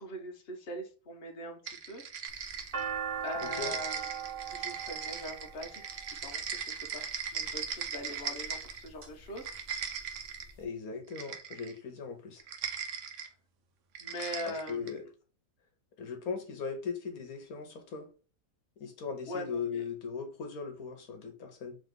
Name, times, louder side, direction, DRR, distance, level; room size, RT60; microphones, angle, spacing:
voice 1, 0.0-2.6 3.2-4.0 4.5-9.5 14.0-14.9 19.3-19.8, left 1 dB, 45° left, 1.2 m, -42 dB
sound 1, 1.7-3.0 3.3-8.9 9.3-10.5 11.1-11.8 12.4-13.3 13.9-15.0, right 7 dB, 65° right, 1.0 m, -39 dB
sound 2, 2.3-6.5 7.4-7.8 8.4-9.1 9.4-9.5 9.7-10.5, right 7 dB, 45° right, 1.0 m, -39 dB
voice 2, 3.4-3.7 10.6-12.4 14.1-14.2 14.4-15.0 16.0-18.1 18.8-21.8, left 5 dB, 80° left, 1.4 m, -39 dB
3.9 x 3.0 x 3.7 m
omnidirectional pair, 1.5 m